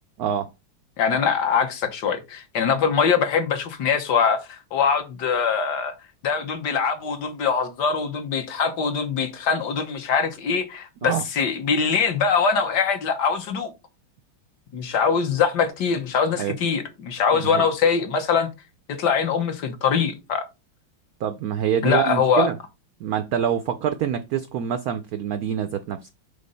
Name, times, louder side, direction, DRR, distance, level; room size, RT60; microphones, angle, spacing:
voice 1, 0.2-0.5 11.0-11.2 16.4-16.5 17.3-17.6 21.2-22.6 23.0-26.1, right 9 dB, 90° right, 0.8 m, -26 dB
voice 2, 1.0-5.9 6.2-13.7 14.7-18.5 18.9-20.4 21.8-22.5, left 6 dB, 60° left, 1.5 m, -23 dB
5.2 x 3.9 x 5.4 m
omnidirectional pair, 2.2 m